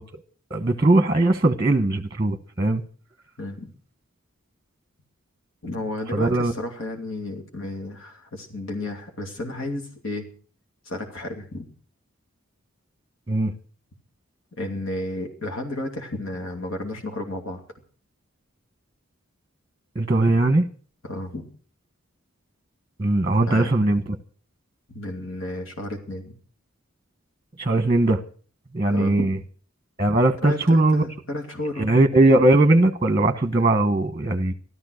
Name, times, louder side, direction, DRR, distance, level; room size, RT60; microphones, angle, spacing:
voice 1, 0.5-2.8 6.1-6.5 13.3-13.5 19.9-20.6 23.0-24.0 27.6-28.2 28.7-29.4 30.0-31.0 31.8-34.5, right 2 dB, 20° right, 1.1 m, -19 dB
voice 2, 3.4-3.7 5.6-10.3 10.8-11.7 14.6-17.6 21.0-21.5 23.5-23.7 24.9-26.3 28.9-29.4 30.4-31.9, left 1 dB, 65° left, 2.6 m, -32 dB
14.5 x 12.5 x 6.4 m
head